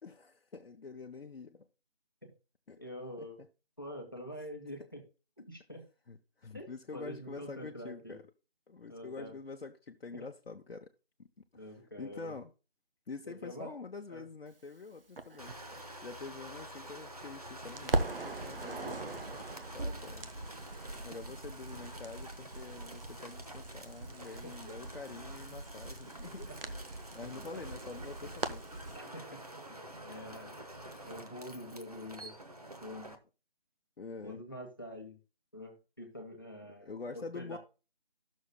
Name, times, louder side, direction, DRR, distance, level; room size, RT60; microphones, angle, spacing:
voice 1, 0.0-1.7 2.7-2.8 3.2-3.5 6.1-8.2 8.7-10.9 11.2-11.3 11.5-12.5 13.1-15.6 16.0-19.4 19.7-20.3 21.0-26.5 27.1-28.6 34.0-34.4 36.8-37.6, left 4 dB, 75° left, 0.8 m, -46 dB
voice 2, 2.8-3.4 3.8-5.0 5.4-5.8 6.5-8.2 8.9-9.3 11.5-12.4 13.2-13.7 14.1-14.2 24.2-24.5 26.5-26.6 27.3-27.6 28.9-29.4 29.7-29.8 30.0-30.5 31.0-32.4 32.8-33.2 34.2-35.2 35.5-37.6, equal, 20° left, 1.0 m, -46 dB
Crackle, 15.2-17.3 17.6-29.0, right 2 dB, 65° right, 0.8 m, -40 dB
sound 1, 15.4-33.2, right 1 dB, 40° right, 0.8 m, -49 dB
13.5 x 6.3 x 2.2 m
figure-of-eight pair, 175°, 30 cm